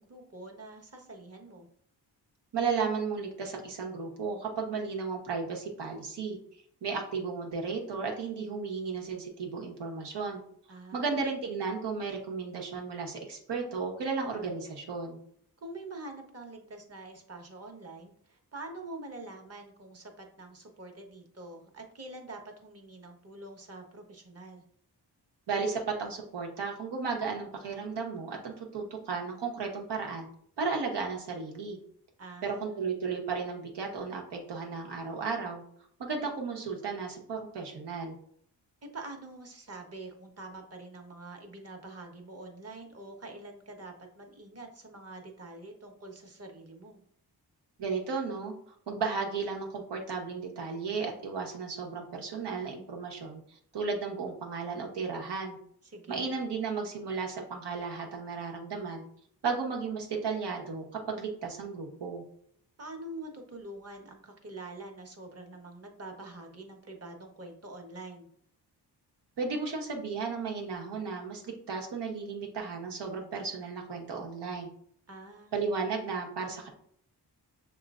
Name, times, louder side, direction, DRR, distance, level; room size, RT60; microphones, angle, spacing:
voice 1, 0.0-1.7 10.7-11.3 15.6-24.6 32.2-32.9 38.8-47.0 55.8-56.4 62.8-68.3 75.1-75.6, right 2 dB, 35° right, 3 dB, 1.2 m, -45 dB
voice 2, 2.5-6.4 6.8-10.4 10.9-15.2 25.5-30.3 30.6-31.8 32.4-35.6 36.0-38.2 47.8-48.5 48.9-53.4 53.7-55.6 56.1-59.0 59.4-62.2 69.4-74.7 75.5-76.7, right 5 dB, 75° right, 1 dB, 1.2 m, -34 dB
6.6 x 3.0 x 2.4 m, 0.65 s
cardioid pair, 60°, 41 cm